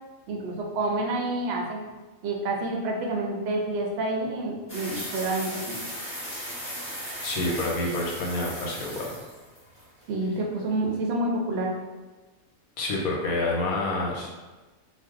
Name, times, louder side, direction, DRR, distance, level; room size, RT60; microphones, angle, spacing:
voice 1, 0.3-1.9 2.2-5.7 10.1-11.7, right 2 dB, 65° right, 0 dB, 0.7 m, -28 dB
sound 1, 4.7-10.0, equal, 10° left, 0.9 m, -37 dB
voice 2, 7.2-9.2 12.8-14.3, left 2 dB, 90° left, -2 dB, 1.1 m, -28 dB
2.6 x 2.1 x 3.6 m, 1.2 s
omnidirectional pair, 1.4 m